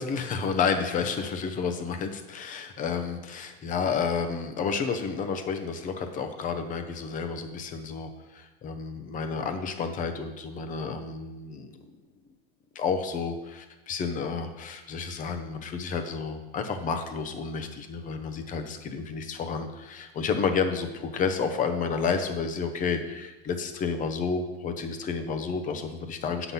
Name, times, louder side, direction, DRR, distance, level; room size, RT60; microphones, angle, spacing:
voice 1, 0.0-11.7 12.7-26.5, left 5 dB, 25° left, 7 dB, 0.9 m, -30 dB
7.8 x 6.0 x 5.5 m, 1.1 s
supercardioid pair, 125°, 30 cm